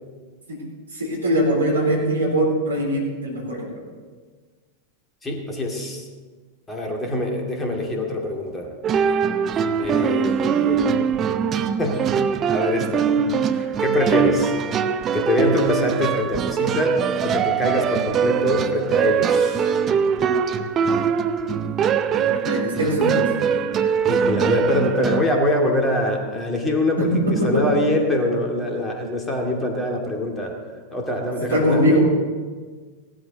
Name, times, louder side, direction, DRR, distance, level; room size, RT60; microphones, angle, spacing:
voice 1, 0.9-3.8 22.3-23.3 27.0-27.6 31.5-32.0, equal, 75° right, -2 dB, 3.7 m, -21 dB
voice 2, 5.2-6.1 6.7-8.7 9.8-11.0 11.8-12.1 12.5-13.1 13.5-14.5 15.1-19.7 24.0-30.5 30.9-32.0, left 1 dB, 15° left, 0 dB, 2.3 m, -24 dB
sound 1, 8.8-25.3, right 7 dB, 30° right, 0.6 m, -22 dB
16.5 x 12.0 x 4.0 m, 1.5 s
figure-of-eight pair, 90°, 0 cm